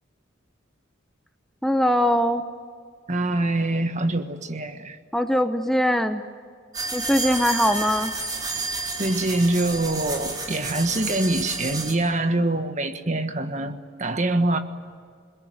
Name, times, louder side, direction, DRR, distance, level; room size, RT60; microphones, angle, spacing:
voice 1, 1.6-2.4 5.1-6.2 6.9-8.1, equal, ahead, 7 dB, 0.8 m, -21 dB
voice 2, 3.1-5.0 9.0-14.6, right 2 dB, 35° right, 8 dB, 1.5 m, -24 dB
sound 1, 6.7-11.9, right 3 dB, 20° right, 4.0 m, -30 dB
28.5 x 21.5 x 9.4 m, 2.1 s
head